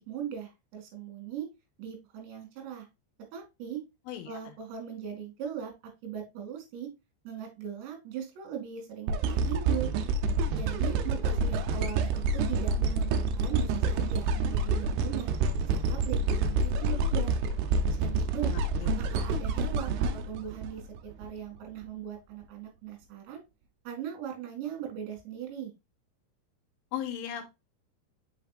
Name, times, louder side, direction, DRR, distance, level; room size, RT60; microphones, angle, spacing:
voice 1, 0.0-1.5 1.8-2.9 3.3-3.8 4.3-5.7 6.0-6.9 7.3-9.9 10.5-15.3 15.7-17.4 18.0-18.5 19.1-20.8 21.2-23.4 23.9-25.7, right 9 dB, 70° right, 3 dB, 4.1 m, -39 dB
voice 2, 4.1-4.5 18.5-18.9 26.9-27.4, left 10 dB, 90° left, 7 dB, 3.5 m, -37 dB
sound 1, 9.1-21.3 21.8-21.9, right 3 dB, 85° right, 2.3 m, -28 dB
6.6 x 5.9 x 2.4 m, 0.24 s
omnidirectional pair, 5.6 m